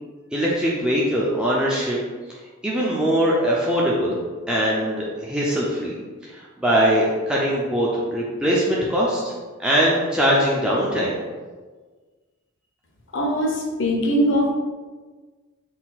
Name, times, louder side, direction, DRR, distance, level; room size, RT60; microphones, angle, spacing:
voice 1, 0.3-2.0 2.6-4.2 4.5-5.9 6.6-9.3 9.6-11.2, equal, 5° right, -6 dB, 0.4 m, -21 dB
voice 2, 13.1-14.5, equal, 65° left, 1 dB, 0.7 m, -21 dB
4.1 x 2.3 x 4.0 m, 1.4 s
head